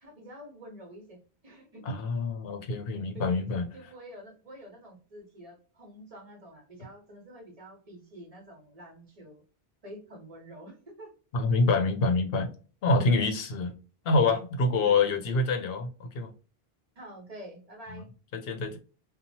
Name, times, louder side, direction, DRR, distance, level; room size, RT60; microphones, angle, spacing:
voice 1, 0.0-1.9 3.1-9.4 9.8-11.1 14.8-15.3 17.0-18.1, right 1 dB, 40° right, 1.0 m, -47 dB
voice 2, 1.9-3.7 11.3-12.5 12.8-13.7 14.0-16.3 17.9-18.0 18.3-18.8, left 3 dB, 70° left, 0.8 m, -26 dB
2.9 x 2.1 x 2.6 m
omnidirectional pair, 1.0 m